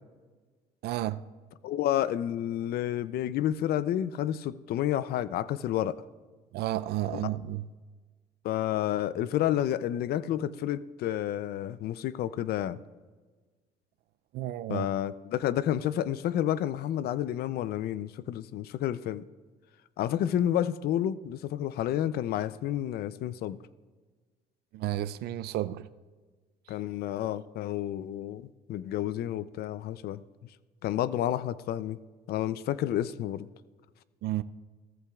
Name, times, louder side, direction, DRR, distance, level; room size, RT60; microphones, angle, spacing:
voice 1, 0.8-1.2 6.5-7.7 14.3-14.9 24.7-25.9 34.2-34.4, right 14 dB, 70° right, 0.5 m, -32 dB
voice 2, 1.6-6.0 7.1-7.2 8.4-12.8 14.7-19.3 20.0-23.6 26.7-28.4 28.7-30.2 30.8-32.0 32.3-33.5, left 11 dB, 65° left, 0.5 m, -30 dB
16.0 x 14.5 x 2.4 m
cardioid pair, 110°, 17 cm